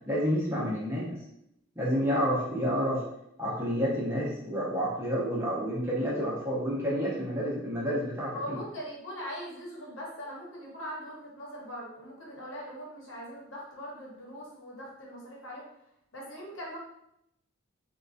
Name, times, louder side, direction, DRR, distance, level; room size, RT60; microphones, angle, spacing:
voice 1, 0.1-1.2 1.8-3.0 3.4-8.6, equal, 10° right, -6 dB, 0.6 m, -29 dB
voice 2, 8.3-15.6 16.1-16.8, equal, 80° left, -3 dB, 1.0 m, -41 dB
3.7 x 2.2 x 2.5 m, 0.78 s
head